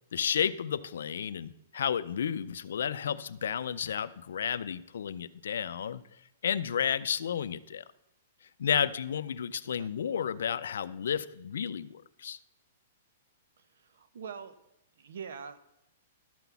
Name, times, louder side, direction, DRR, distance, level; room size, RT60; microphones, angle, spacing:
voice 1, 0.1-6.0 6.4-7.8 8.6-12.4, left 8 dB, 80° left, 15 dB, 0.5 m, -32 dB
voice 2, 13.6-14.5 15.0-15.6, right 6 dB, 75° right, 13 dB, 0.9 m, -44 dB
12.0 x 6.1 x 6.9 m, 0.84 s
hypercardioid pair, 170°, 0 cm